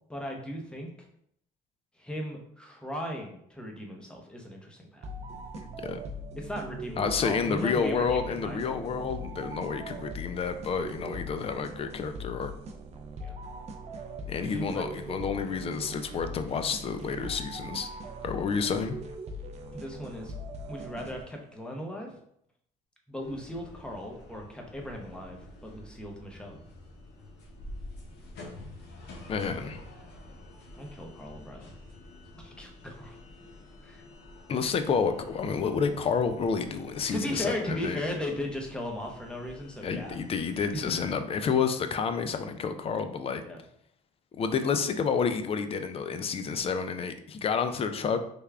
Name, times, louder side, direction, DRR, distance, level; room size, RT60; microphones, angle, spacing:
voice 1, 0.1-1.1 2.0-5.0 6.4-8.7 13.2-13.4 14.4-14.9 19.7-20.3 20.7-22.1 23.1-26.6 30.7-31.7 32.3-33.2 33.8-34.0 37.1-40.2 40.7-40.9 43.4-43.6, left 1 dB, 5° left, 1 dB, 0.7 m, -37 dB
sound 1, 5.0-21.5, right 1 dB, 40° right, 0.5 m, -41 dB
voice 2, 7.0-12.5 14.3-17.9 18.2-19.0 29.3-29.8 34.5-38.0 39.8-43.4 44.3-48.2, left 5 dB, 35° left, 8 dB, 0.3 m, -29 dB
sound 2, 23.2-41.1, left 1 dB, 80° left, 0.8 m, -48 dB
3.4 x 2.3 x 3.4 m, 0.70 s
cardioid pair, 110°, 17 cm